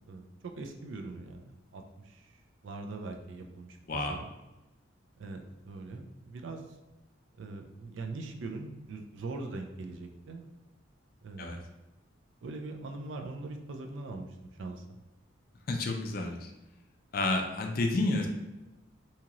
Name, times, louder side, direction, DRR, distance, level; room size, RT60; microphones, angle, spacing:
voice 1, 0.1-2.4 2.6-3.8 4.1-4.3 5.2-6.6 7.4-10.5 11.2-11.6 12.4-14.3 14.6-15.0, right 3 dB, 70° right, 4 dB, 0.4 m, -41 dB
voice 2, 15.7-16.5 17.1-18.3, left 2 dB, 45° left, 3 dB, 0.4 m, -30 dB
2.8 x 2.4 x 2.9 m, 1.0 s
head